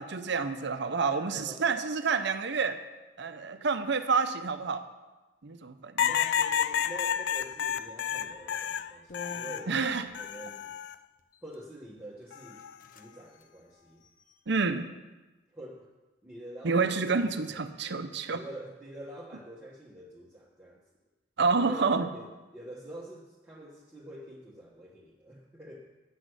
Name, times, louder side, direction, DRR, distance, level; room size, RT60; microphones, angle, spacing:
voice 1, 0.0-2.8 3.2-4.8 5.4-6.1 9.7-10.1 14.5-14.9 16.6-18.4 21.4-22.1, right 4 dB, 65° right, 9 dB, 0.7 m, -28 dB
voice 2, 1.0-1.7 6.0-9.8 10.1-10.7 11.4-12.6 12.9-14.0 15.5-15.9 16.2-18.0 18.3-20.8 21.6-25.9, right 1 dB, 10° right, -6 dB, 1.3 m, -46 dB
sound 1, 6.0-9.7 10.1-10.9 12.3-12.7, left 9 dB, 65° left, 0.3 m, -30 dB
sound 2, 8.3-8.5 9.1-10.2 11.2-11.6 12.2-12.3 12.6-13.1 13.3-13.5 14.0-14.7, left 4 dB, 45° left, 0.7 m, -47 dB
10.0 x 6.2 x 8.0 m, 1.2 s
head